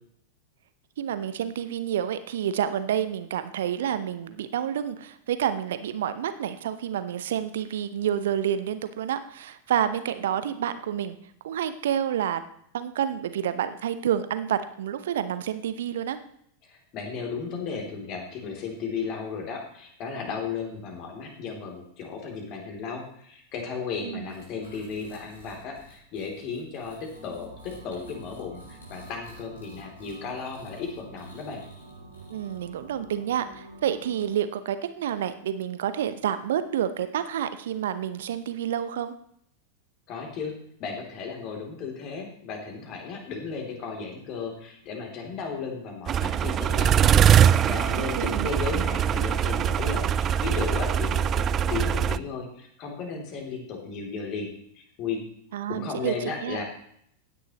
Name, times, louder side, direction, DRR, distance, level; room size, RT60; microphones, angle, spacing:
voice 1, 1.0-11.2 11.4-12.4 12.7-16.2 24.0-24.3 32.3-39.1 48.0-48.5 55.5-56.6, right 9 dB, 60° right, 12 dB, 0.8 m, -29 dB
voice 2, 16.6-31.6 40.1-40.5 40.8-47.2 47.4-55.2 55.7-56.6, left 5 dB, 40° left, 2 dB, 3.1 m, -35 dB
sound 1, 24.3-32.8, left 1 dB, 70° left, 4.4 m, -55 dB
sound 2, 27.1-34.3, right 2 dB, 90° right, 2.7 m, -47 dB
sound 3, 46.1-52.2, right 9 dB, 25° right, 0.4 m, -22 dB
15.5 x 9.9 x 3.1 m, 0.68 s
figure-of-eight pair, 90°, 0 cm